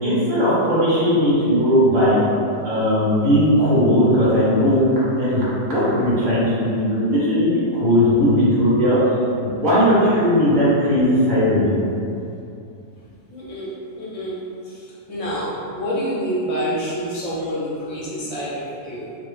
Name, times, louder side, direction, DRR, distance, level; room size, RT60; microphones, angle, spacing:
voice 1, 0.0-2.2 2.6-4.8 5.1-9.0 9.4-11.8, equal, 25° right, -10 dB, 1.2 m, -18 dB
voice 2, 13.3-19.2, equal, 40° left, -8 dB, 0.4 m, -28 dB
3.3 x 3.1 x 3.3 m, 2.6 s
omnidirectional pair, 1.9 m